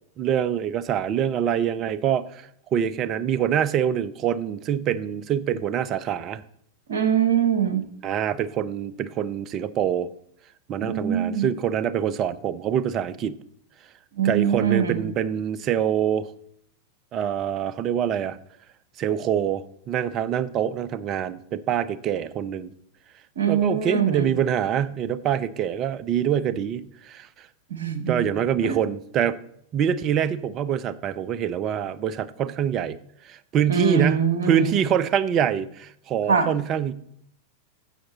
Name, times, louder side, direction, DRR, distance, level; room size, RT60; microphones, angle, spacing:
voice 1, 0.2-6.4 8.0-10.1 10.7-13.4 14.2-16.3 17.1-18.4 19.0-22.7 23.5-27.3 28.1-29.4 29.7-33.0 33.2-36.9, right 9 dB, 35° right, 17 dB, 0.5 m, -25 dB
voice 2, 6.9-7.9 10.8-11.5 14.2-15.1 23.4-24.3 27.7-28.2 28.6-28.7 33.7-34.7 36.3-36.5, right 7 dB, 65° right, 10 dB, 1.1 m, -23 dB
10.0 x 7.7 x 4.0 m, 0.68 s
figure-of-eight pair, 90°, 0 cm